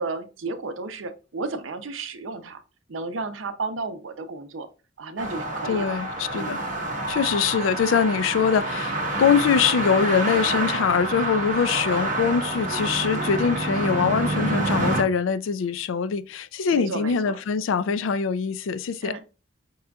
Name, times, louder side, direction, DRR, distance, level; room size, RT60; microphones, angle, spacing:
voice 1, 0.0-2.6 2.9-4.7 5.0-6.0 6.3-6.6 16.7-17.4 19.0-19.3, right 3 dB, 80° right, 0.6 m, -33 dB
sound 1, 5.2-15.0, right 2 dB, 45° right, 1.2 m, -27 dB
voice 2, 5.7-6.6 7.1-19.2, left 6 dB, 80° left, 0.4 m, -23 dB
5.5 x 3.7 x 2.3 m
head